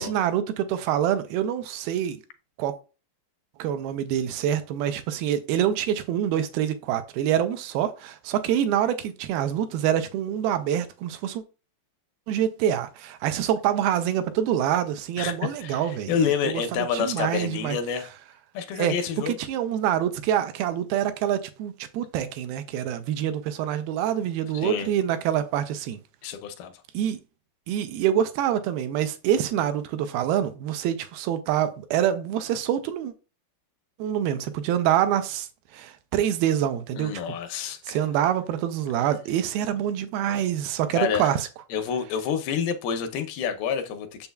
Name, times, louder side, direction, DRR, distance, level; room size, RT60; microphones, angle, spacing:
voice 1, 0.0-2.2 2.6-2.7 3.6-11.4 12.3-17.8 18.8-18.9 19.3-26.0 26.9-27.2 27.7-33.1 34.0-35.5 35.7-37.1 37.9-41.5, right 10 dB, 80° right, 2.5 m, -26 dB
voice 2, 15.6-18.1 18.5-19.4 24.5-24.9 26.2-26.7 37.0-38.0 40.9-41.4 41.7-44.3, left 7 dB, 80° left, 2.5 m, -28 dB
7.0 x 6.8 x 2.3 m
omnidirectional pair, 4.4 m